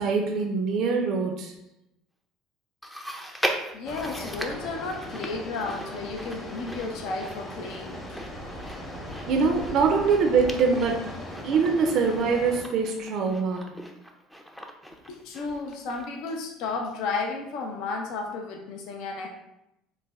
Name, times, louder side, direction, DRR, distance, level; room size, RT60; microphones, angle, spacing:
voice 1, 0.0-1.5 9.3-11.1 11.4-13.7, right 5 dB, 60° right, 3 dB, 0.4 m, -23 dB
Chewing mastication, 2.8-16.4 16.7-16.8 17.6-17.7, equal, ahead, 0.4 m, -39 dB
voice 2, 3.7-8.2 15.1-19.3, left 3 dB, 70° left, 2 dB, 0.5 m, -33 dB
sound 1, 3.8-12.6, equal, 20° left, 0.8 m, -39 dB
3.2 x 2.1 x 3.4 m, 0.86 s
supercardioid pair, 90°, 0 cm